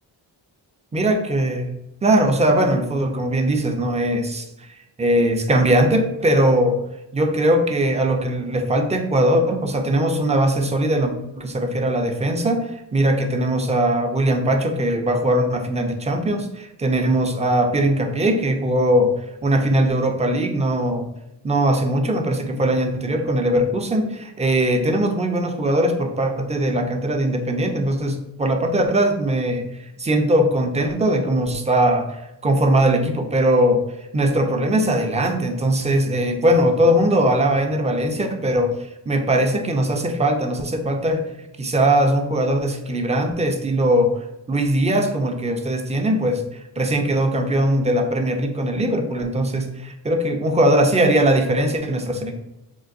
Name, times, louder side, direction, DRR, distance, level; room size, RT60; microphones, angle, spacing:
voice 1, 0.9-4.5 5.0-6.8 7.1-19.1 19.4-21.1 21.4-29.6 30.0-32.1 32.4-33.8 34.1-38.8 39.1-41.2 41.6-44.1 44.5-46.4 46.8-52.3, right 1 dB, 15° right, 4 dB, 0.4 m, -20 dB
3.7 x 2.2 x 2.5 m, 0.91 s
supercardioid pair, 45°, 45 cm